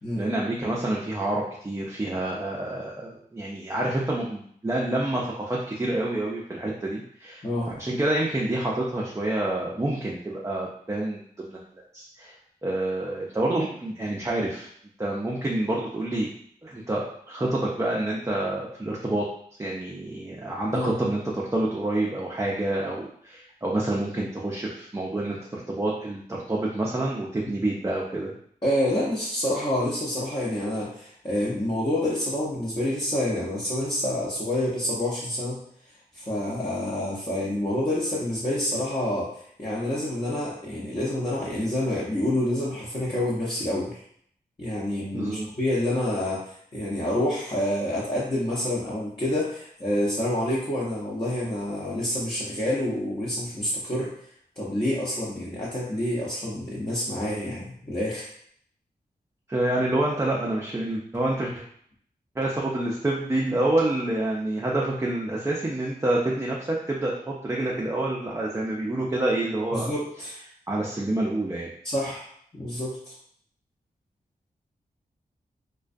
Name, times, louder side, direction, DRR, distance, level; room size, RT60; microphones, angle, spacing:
voice 1, 0.1-11.6 11.9-12.3 12.6-14.7 15.0-16.3 16.6-19.2 19.6-28.3 45.1-45.5 59.5-61.5 62.4-69.9 70.7-71.7, right 1 dB, 20° right, -4 dB, 0.5 m, -28 dB
voice 2, 28.6-35.6 36.1-39.3 39.6-44.0 44.6-54.1 54.6-58.3 69.7-70.3 71.8-72.3 72.5-73.1, left 1 dB, 30° left, -7 dB, 0.7 m, -28 dB
2.3 x 2.2 x 2.5 m, 0.64 s
cardioid pair, 40°, 17 cm